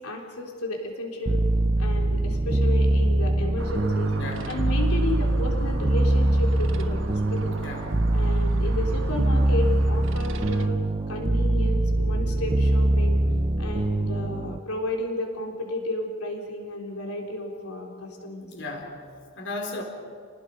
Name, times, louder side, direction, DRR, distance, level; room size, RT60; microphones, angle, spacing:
voice 1, 0.0-1.4 1.8-4.2 4.5-7.6 8.1-10.8 11.1-13.2 13.6-18.5, left 2 dB, 85° left, 1 dB, 3.7 m, -33 dB
sound 1, 1.3-14.6, right 1 dB, 25° right, 0.5 m, -23 dB
sound 2, 3.6-10.7, right 2 dB, 60° right, 1.3 m, -39 dB
voice 2, 7.6-7.9 13.2-13.6 18.5-19.1 19.4-19.8, left 2 dB, 55° left, 3 dB, 3.6 m, -35 dB
30.0 x 19.5 x 5.4 m, 2.1 s
head